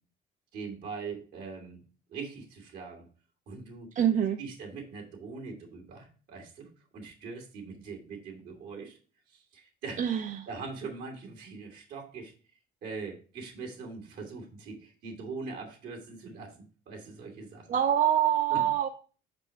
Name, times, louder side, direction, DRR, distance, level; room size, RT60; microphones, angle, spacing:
voice 1, 0.5-1.8 2.1-3.1 3.5-3.9 4.4-9.0 9.3-10.0 10.5-12.3 12.8-17.8 18.5-18.7, right 4 dB, 70° right, 0 dB, 2.8 m, -42 dB
voice 2, 4.0-4.4 10.0-10.5 17.7-18.9, right 9 dB, 50° right, 7 dB, 0.6 m, -25 dB
5.3 x 5.3 x 4.5 m, 0.38 s
cardioid pair, 110°, 17 cm